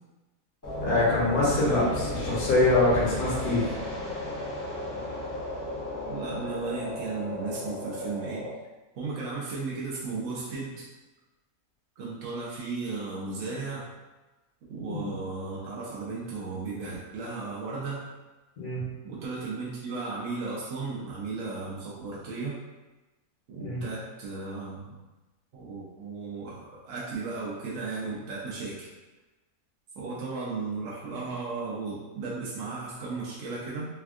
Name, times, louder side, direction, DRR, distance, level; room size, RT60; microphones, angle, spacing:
sound 1, 0.6-8.5, left 1 dB, 20° left, 0.5 m, -34 dB
voice 1, 0.8-1.8 2.2-3.6 14.9-15.1 18.6-18.8 23.6-23.8, left 2 dB, 70° left, -6 dB, 1.4 m, -24 dB
voice 2, 6.0-8.4 9.0-10.9 12.0-13.9 14.7-18.1 19.0-22.5 23.5-24.9 25.5-28.9 29.9-33.9, right 4 dB, 65° right, -6 dB, 0.9 m, -35 dB
3.4 x 2.3 x 2.4 m, 1.1 s
omnidirectional pair, 1.6 m